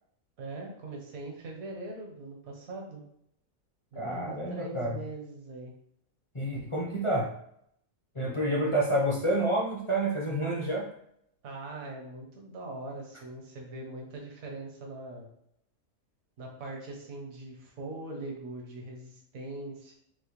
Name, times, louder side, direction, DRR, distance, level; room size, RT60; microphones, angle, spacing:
voice 1, 0.4-3.0 3.9-5.7 11.4-15.3 16.4-19.9, right 2 dB, 75° right, -1 dB, 1.4 m, -41 dB
voice 2, 3.9-5.0 6.3-7.3 8.1-10.9, right 1 dB, 35° left, -3 dB, 0.5 m, -28 dB
6.0 x 2.1 x 3.1 m, 0.72 s
omnidirectional pair, 1.5 m